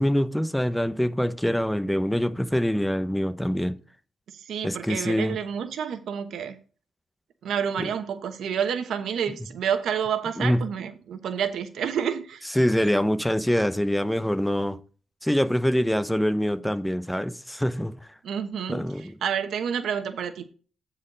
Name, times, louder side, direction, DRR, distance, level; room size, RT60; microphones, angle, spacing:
voice 1, 0.0-3.8 4.6-5.4 10.4-10.7 12.6-14.8 15.2-17.9 18.7-19.1, equal, 5° left, 0.8 m, -24 dB
voice 2, 4.3-6.6 7.4-12.4 18.2-20.5, right 8 dB, 75° right, 1.1 m, -29 dB
9.3 x 4.4 x 5.2 m
cardioid pair, 95°, 0 cm